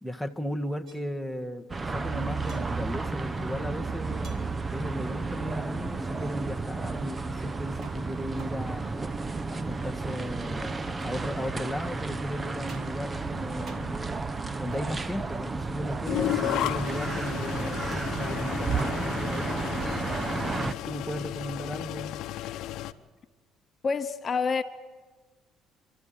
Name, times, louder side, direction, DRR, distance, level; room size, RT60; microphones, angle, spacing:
voice 1, 0.0-8.8 9.5-14.2 14.6-20.0 20.6-22.2, equal, ahead, 8 dB, 1.5 m, -36 dB
sound 1, 0.9-1.0 2.5-2.7 4.2-4.4 7.8-9.0 11.0-11.6 12.7-13.3 13.7-14.1 14.7-15.4 17.9-18.4 18.8-19.2, right 4 dB, 60° right, 2.4 m, -50 dB
sound 2, 1.7-20.7, right 3 dB, 25° right, 0.9 m, -32 dB
sound 3, 16.1-22.9, left 14 dB, 75° left, 0.8 m, -33 dB
voice 2, 23.8-24.6, left 5 dB, 40° left, 9 dB, 0.9 m, -28 dB
28.5 x 13.0 x 8.9 m, 1.3 s
supercardioid pair, 85°, 0 cm